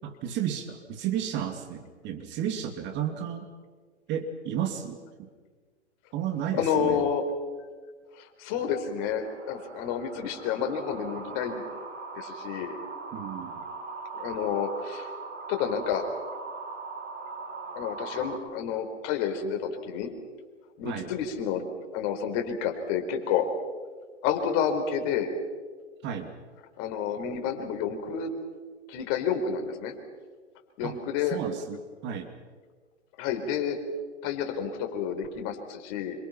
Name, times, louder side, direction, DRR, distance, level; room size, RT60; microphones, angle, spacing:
voice 1, 0.0-3.5 4.1-5.3 6.1-7.0 13.1-13.6 20.8-21.1 26.0-26.4 30.8-31.0 31.3-32.3, right 9 dB, 30° right, 6 dB, 2.6 m, -33 dB
voice 2, 6.5-7.3 8.2-11.6 12.1-12.8 14.1-15.1 15.5-16.1 17.7-20.2 20.8-23.5 24.2-25.3 26.8-28.3 28.9-29.9 30.8-31.4 33.2-33.8 34.2-36.3, left 7 dB, 40° left, 5 dB, 4.5 m, -30 dB
sound 1, 9.2-18.4, right 4 dB, 75° right, 7.6 m, -40 dB
27.5 x 25.5 x 5.9 m, 1.5 s
hypercardioid pair, 115°, 35 cm